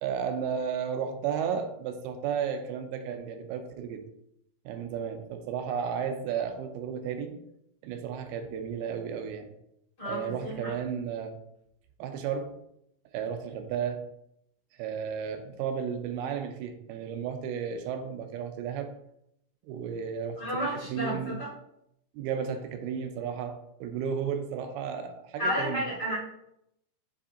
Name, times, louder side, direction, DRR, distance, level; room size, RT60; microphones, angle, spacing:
voice 1, 0.0-4.0 4.7-7.4 7.8-9.5 10.1-11.4 12.0-12.5 13.1-14.0 14.8-18.9 19.6-20.4 20.9-21.4 22.1-25.9, right 7 dB, 80° right, 6 dB, 2.4 m, -33 dB
voice 2, 10.0-10.7 20.4-21.5 25.4-26.2, equal, 35° left, -7 dB, 1.9 m, -32 dB
7.0 x 5.0 x 2.7 m, 0.77 s
omnidirectional pair, 4.7 m